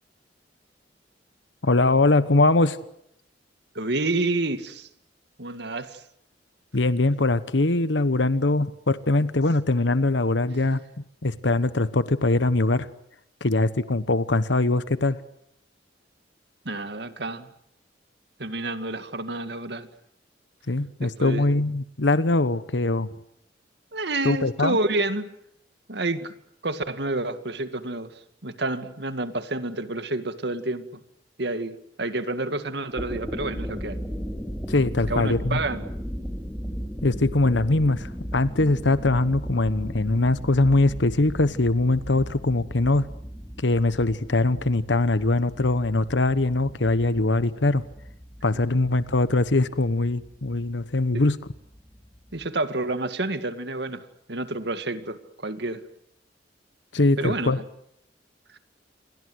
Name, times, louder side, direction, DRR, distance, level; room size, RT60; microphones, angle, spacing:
voice 1, 1.6-2.8 6.7-10.8 11.2-12.9 13.4-15.2 20.7-23.1 24.2-24.8 34.7-35.6 37.0-43.1 43.6-47.8 48.4-51.4 56.9-57.6, left 2 dB, 80° left, 14 dB, 1.1 m, -22 dB
voice 2, 3.8-4.9 5.4-6.0 16.7-17.5 18.4-19.9 21.0-21.4 23.9-25.3 25.9-26.3 26.6-28.1 28.4-30.9 31.4-34.0 35.1-35.9 51.1-51.3 52.3-55.8 57.2-57.5, right 2 dB, 65° right, 10 dB, 2.1 m, -29 dB
sound 1, 32.8-52.5, equal, 5° left, 3.4 m, -37 dB
28.5 x 23.0 x 8.0 m, 0.75 s
head